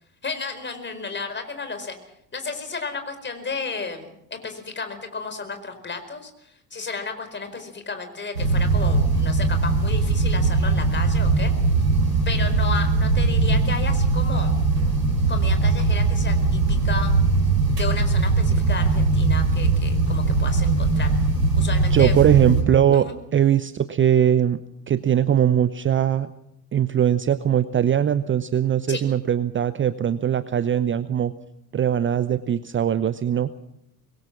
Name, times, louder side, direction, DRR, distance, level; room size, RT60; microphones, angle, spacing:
voice 1, 0.2-2.0 2.3-11.5 12.3-14.5 15.3-17.1 17.7-21.1 21.6-22.1 22.9-23.1 28.9-29.0, left 4 dB, 25° left, 7 dB, 4.7 m, -33 dB
sound 1, 8.3-22.6, right 3 dB, 85° right, 3.9 m, -20 dB
voice 2, 21.9-24.6 24.9-26.3 26.7-31.3 31.7-33.5, right 9 dB, 25° right, 14 dB, 0.8 m, -20 dB
25.0 x 21.5 x 6.2 m, 0.78 s
figure-of-eight pair, 60°, 47 cm